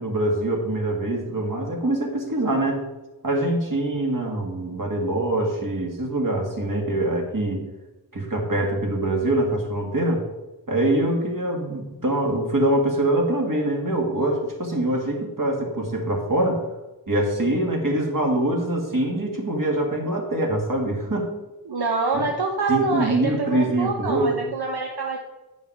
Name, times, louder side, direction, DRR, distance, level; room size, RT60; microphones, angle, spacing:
voice 1, 0.0-2.8 3.2-7.6 8.1-10.2 10.7-16.6 17.1-21.3 22.1-22.3 22.7-24.5, right 1 dB, 55° right, 0 dB, 2.0 m, -24 dB
voice 2, 21.7-25.2, right 3 dB, 80° right, 2 dB, 0.8 m, -26 dB
9.5 x 5.3 x 4.8 m, 1.1 s
wide cardioid pair, 45°, 38 cm